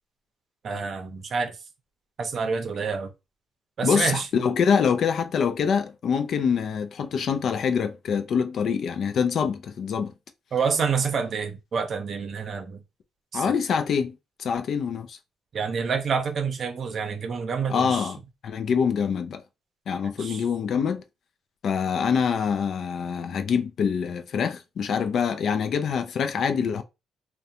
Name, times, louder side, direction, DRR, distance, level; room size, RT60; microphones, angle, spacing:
voice 1, 0.6-1.6 2.2-3.1 3.8-4.3 10.5-12.8 13.3-13.5 15.5-18.1 20.2-20.4, right 5 dB, 55° right, 0.6 m, -28 dB
voice 2, 3.8-10.1 13.3-15.2 17.7-18.2 18.4-19.4 19.9-21.0 21.6-26.8, left 6 dB, 65° left, 0.3 m, -25 dB
2.4 x 2.1 x 2.8 m
cardioid pair, 90°, 0 cm